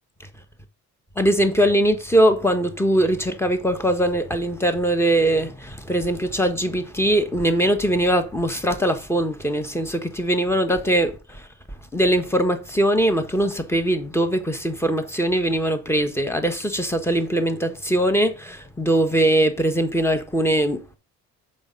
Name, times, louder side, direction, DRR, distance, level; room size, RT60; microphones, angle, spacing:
voice 1, 1.2-11.4 11.9-21.0, right 1 dB, 10° left, 1.6 m, -21 dB
7.0 x 5.1 x 5.4 m
cardioid pair, 90°, 30 cm